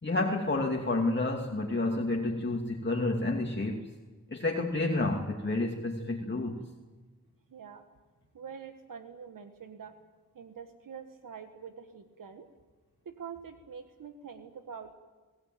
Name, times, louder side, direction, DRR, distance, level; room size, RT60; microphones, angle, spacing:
voice 1, 0.0-3.9 4.3-6.6, left 2 dB, 35° left, 0 dB, 2.6 m, -30 dB
voice 2, 7.5-7.8 8.3-9.9 10.3-12.4 13.0-14.9, right 6 dB, 75° right, 7 dB, 1.6 m, -45 dB
23.0 x 18.0 x 9.2 m, 1.3 s
cardioid pair, 55°, 33 cm